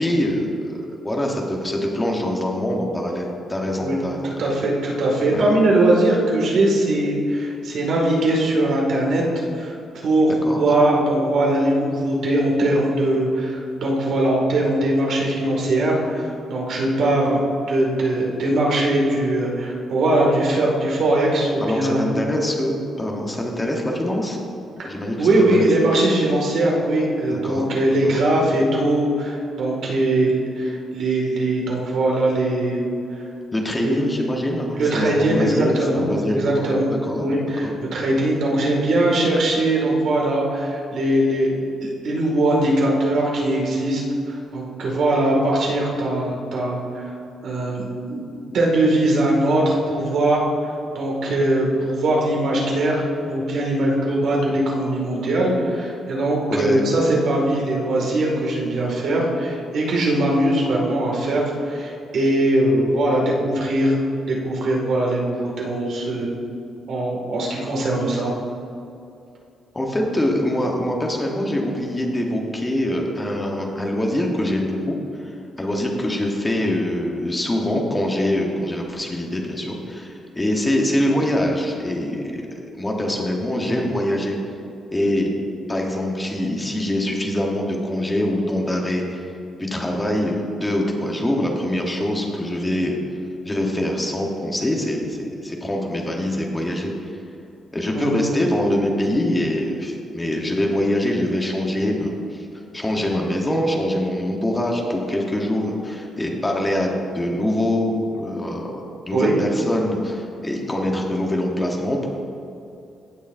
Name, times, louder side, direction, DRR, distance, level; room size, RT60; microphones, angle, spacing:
voice 1, 0.0-4.3 5.3-5.5 10.3-10.6 21.6-24.4 24.8-25.7 27.3-27.7 28.1-28.2 33.5-36.7 37.1-37.3 37.6-37.7 56.5-56.8 69.7-75.3 75.6-82.4 82.7-84.4 84.9-85.3 85.7-89.2 89.6-93.0 93.4-96.9 97.7-102.5 102.7-112.1, left 1 dB, 10° left, 0 dB, 1.1 m, -24 dB
voice 2, 4.2-9.2 9.5-9.7 10.0-17.4 17.7-22.0 24.8-24.9 25.2-32.8 33.8-33.9 34.8-36.9 37.2-44.0 44.5-47.1 47.4-50.4 50.9-53.0 53.3-63.9 64.3-66.3 66.9-68.3 97.9-98.2 109.1-109.3, right 1 dB, 60° right, -2 dB, 2.1 m, -21 dB
16.0 x 6.5 x 2.6 m, 2.7 s
cardioid pair, 175°, 0 cm